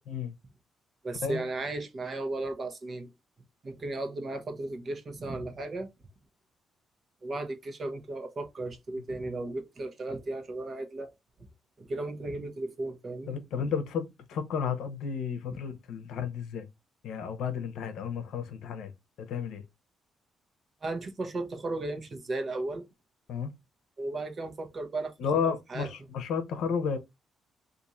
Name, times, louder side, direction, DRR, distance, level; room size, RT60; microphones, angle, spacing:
voice 1, 1.0-3.1 3.6-5.9 7.2-11.1 11.8-13.4 20.8-22.9 24.0-25.4 25.7-25.9, right 2 dB, 35° right, 0.9 m, -35 dB
voice 2, 13.3-16.7 17.0-18.9 19.2-19.6 23.3-23.5 25.2-27.0, left 6 dB, 80° left, 0.7 m, -32 dB
2.6 x 2.5 x 4.1 m
cardioid pair, 130°, 0 cm